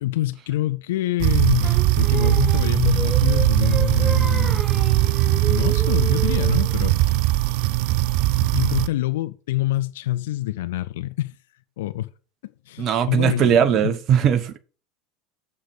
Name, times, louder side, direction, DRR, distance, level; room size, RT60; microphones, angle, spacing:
voice 1, 0.0-4.6 5.4-7.2 8.4-11.4 11.8-12.1 12.4-13.9, left 15 dB, 65° left, 0.5 m, -26 dB
sound 1, 1.2-8.9, right 17 dB, 55° right, 0.5 m, -20 dB
Singing, 1.6-6.8, right 2 dB, ahead, 0.8 m, -33 dB
voice 2, 12.8-14.6, right 8 dB, 40° right, 1.1 m, -19 dB
7.6 x 5.4 x 6.4 m
figure-of-eight pair, 75°, 0 cm